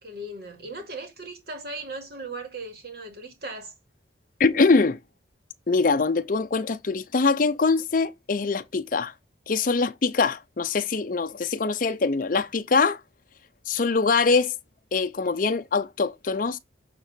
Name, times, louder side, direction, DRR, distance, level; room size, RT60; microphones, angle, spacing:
voice 1, 0.0-3.7, right 2 dB, 60° right, 2.5 m, -37 dB
voice 2, 4.4-5.0 5.7-9.1 9.5-13.0 13.7-14.5 14.9-16.6, left 4 dB, 50° left, 0.6 m, -23 dB
8.4 x 3.7 x 6.0 m
head